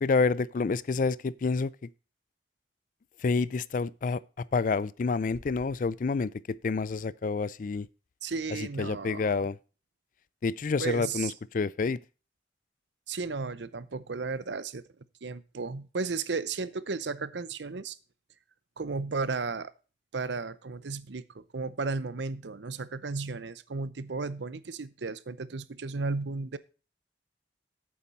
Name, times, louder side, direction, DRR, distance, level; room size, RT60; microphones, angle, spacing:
voice 1, 0.0-1.7 3.2-7.9 8.5-9.6 10.4-12.0, left 4 dB, 45° left, 0.4 m, -28 dB
voice 2, 8.2-9.5 10.8-11.3 13.1-14.8 15.2-18.0 18.8-19.7 20.1-26.6, right 4 dB, 80° right, 0.7 m, -34 dB
8.7 x 7.2 x 5.4 m
head